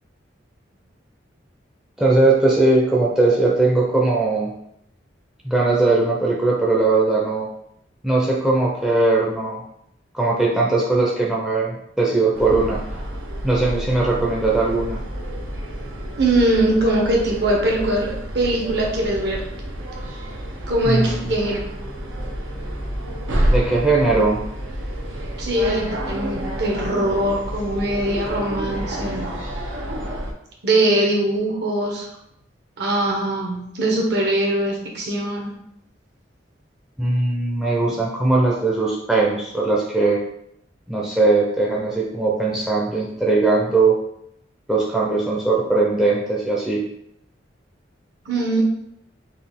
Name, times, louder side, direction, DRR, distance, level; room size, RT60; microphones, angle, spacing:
voice 1, 2.0-4.5 5.4-7.5 8.0-9.6 10.1-12.8 13.4-15.0 20.8-21.3 23.5-24.4 37.0-40.2 40.9-44.0 44.7-46.8, right 3 dB, 5° right, -4 dB, 0.5 m, -19 dB
sound 1, 12.3-30.3, equal, 85° right, 0.7 m, -29 dB
voice 2, 16.2-19.4 20.7-21.6 25.4-29.3 30.6-32.1 32.8-35.6 48.3-48.6, right 1 dB, 60° right, 0 dB, 0.9 m, -21 dB
4.0 x 2.3 x 3.5 m, 0.77 s
head